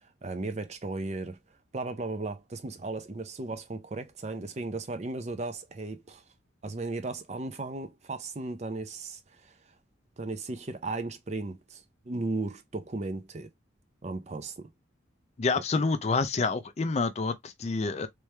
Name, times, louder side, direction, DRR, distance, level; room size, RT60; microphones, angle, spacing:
voice 1, 0.2-1.4 1.7-6.2 6.6-9.5 10.2-13.5 14.0-14.7, right 2 dB, 35° right, 0.5 m, -36 dB
voice 2, 15.4-18.1, left 4 dB, 35° left, 0.4 m, -28 dB
3.4 x 3.1 x 3.2 m
head